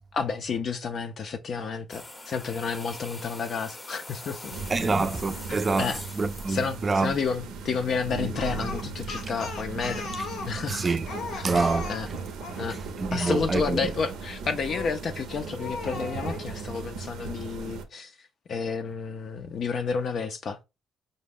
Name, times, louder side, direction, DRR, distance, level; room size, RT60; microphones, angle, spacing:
voice 1, 0.1-5.1 5.5-6.0 6.5-10.1 10.5-10.9 11.3-11.5 11.9-12.1 12.6-12.8 13.1-20.6, left 5 dB, 55° left, 0.4 m, -31 dB
sound 1, 1.9-7.7, left 1 dB, 20° left, 0.6 m, -43 dB
sound 2, 4.5-17.8, right 4 dB, 85° right, 0.6 m, -37 dB
voice 2, 4.7-7.1 10.7-11.1 11.4-11.9 12.7-13.8, right 3 dB, 30° right, 0.4 m, -26 dB
Speech, 8.3-12.7 14.7-15.1 15.6-16.4, left 4 dB, 75° left, 0.8 m, -37 dB
5.1 x 2.1 x 3.5 m
cardioid pair, 90°, 0 cm